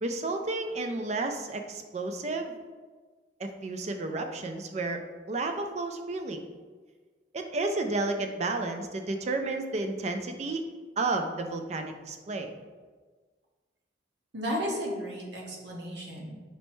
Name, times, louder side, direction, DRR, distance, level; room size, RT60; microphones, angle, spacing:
voice 1, 0.0-2.5 3.4-5.0 5.3-6.4 7.3-10.6 11.0-12.5, right 2 dB, 40° right, 6 dB, 0.4 m, -32 dB
voice 2, 14.3-16.3, equal, 75° right, -1 dB, 0.9 m, -34 dB
5.3 x 3.2 x 3.0 m, 1.4 s
head